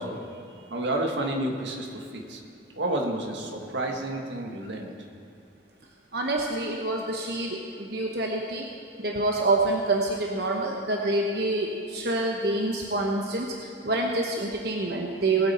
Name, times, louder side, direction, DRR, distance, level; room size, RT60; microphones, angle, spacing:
voice 1, 0.0-2.4 2.7-5.0, right 1 dB, 85° right, 2 dB, 1.6 m, -31 dB
voice 2, 6.1-8.6 9.0-13.5 13.8-15.5, right 2 dB, 60° right, 0 dB, 1.0 m, -27 dB
20.0 x 8.9 x 4.3 m, 2.4 s
head